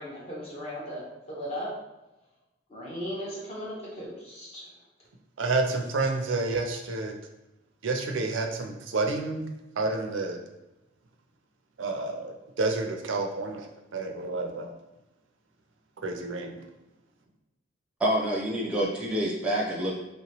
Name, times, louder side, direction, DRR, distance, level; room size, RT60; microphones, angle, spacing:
voice 1, 0.0-1.7 2.7-4.7, equal, 30° left, -6 dB, 1.1 m, -37 dB
voice 2, 5.4-7.1 7.8-9.4 9.8-10.4 11.8-13.6 13.9-14.7 16.0-16.5, right 3 dB, 70° right, 3 dB, 0.5 m, -29 dB
voice 3, 18.0-19.9, right 1 dB, 5° right, -4 dB, 0.7 m, -27 dB
3.1 x 2.9 x 2.9 m, 0.98 s
head